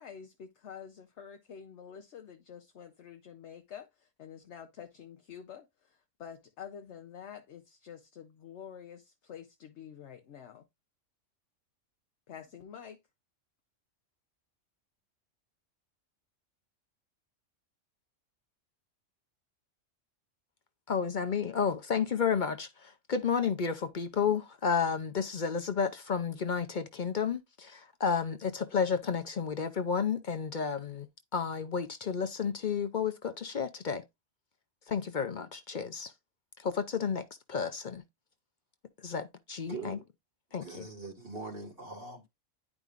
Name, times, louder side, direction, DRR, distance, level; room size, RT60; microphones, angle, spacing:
voice 1, 0.0-10.7 12.3-13.0, left 8 dB, 65° left, 1.0 m, -48 dB
voice 2, 20.9-34.0 34.9-36.1 36.6-38.0 39.0-40.0 40.5-40.8, left 6 dB, 50° left, 0.7 m, -32 dB
voice 3, 39.7-40.1 40.6-42.3, right 3 dB, 50° right, 2.1 m, -42 dB
10.5 x 4.9 x 2.5 m
omnidirectional pair, 1.3 m